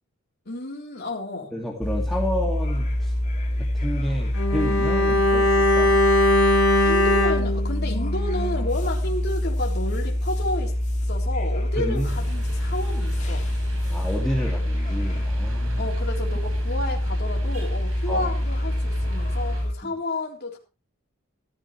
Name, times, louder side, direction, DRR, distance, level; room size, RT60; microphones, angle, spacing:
voice 1, 0.5-1.5 6.8-10.8 11.1-13.5 15.8-20.6, left 1 dB, 55° left, 3.6 m, -31 dB
voice 2, 1.5-3.1 3.6-6.0 11.8-12.1 13.9-15.8 18.1-18.3 19.8-19.9, equal, ahead, 2.2 m, -30 dB
sound 1, 1.8-19.7, left 1 dB, 35° left, 2.2 m, -26 dB
Bowed string instrument, 4.3-8.8 9.0-9.2, left 1 dB, 70° left, 4.6 m, -21 dB
sound 2, 12.0-19.6, right 1 dB, 80° right, 4.9 m, -41 dB
15.5 x 13.5 x 3.2 m
head